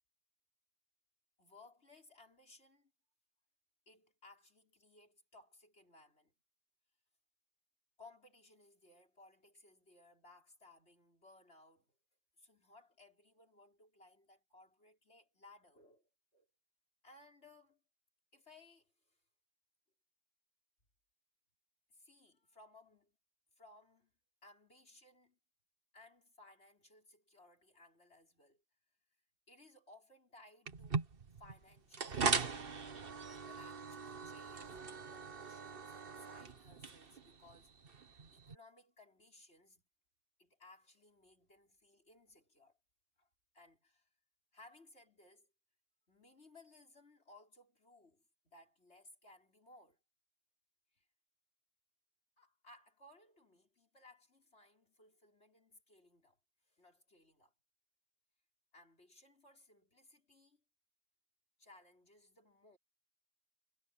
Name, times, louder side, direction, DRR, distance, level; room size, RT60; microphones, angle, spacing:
voice 1, 1.4-2.9 3.9-6.3 8.0-12.0 12.4-16.5 17.0-17.8 18.3-19.2 21.9-23.2 23.6-24.1 24.4-25.4 25.9-28.6 29.5-31.1 31.4-32.5 33.3-34.8 35.1-37.7 38.3-39.8 40.4-42.8 43.2-43.3 43.5-44.1 44.5-45.5 46.1-50.0 50.9-51.1 52.4-56.4 56.7-57.5 58.7-60.6 61.6-62.8, left 2 dB, 60° left, 5.6 m, -62 dB
sound 1, 30.7-38.6, right 5 dB, 50° right, 1.5 m, -40 dB
omnidirectional pair, 1.2 m